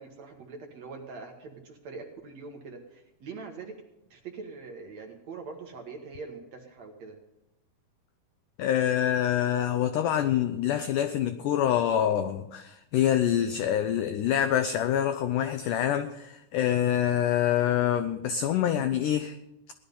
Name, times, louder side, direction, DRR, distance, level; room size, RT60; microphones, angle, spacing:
voice 1, 0.0-3.7 4.1-7.2, right 4 dB, 55° right, 2 dB, 2.2 m, -43 dB
voice 2, 8.6-19.4, left 10 dB, 85° left, 10 dB, 1.8 m, -26 dB
17.5 x 11.5 x 5.3 m, 0.91 s
omnidirectional pair, 4.5 m